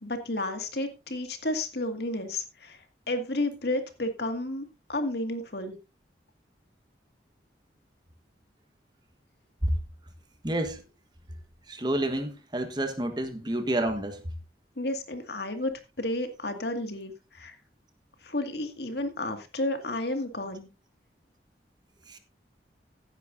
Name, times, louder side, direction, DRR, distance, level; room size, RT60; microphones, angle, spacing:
voice 1, 0.0-5.8 14.8-15.7 16.0-17.6 18.2-20.7, left 1 dB, 65° left, 2.1 m, -32 dB
voice 2, 10.4-10.8 11.7-14.2 22.1-22.2, right 1 dB, 25° right, 1.4 m, -29 dB
16.0 x 9.7 x 2.6 m
head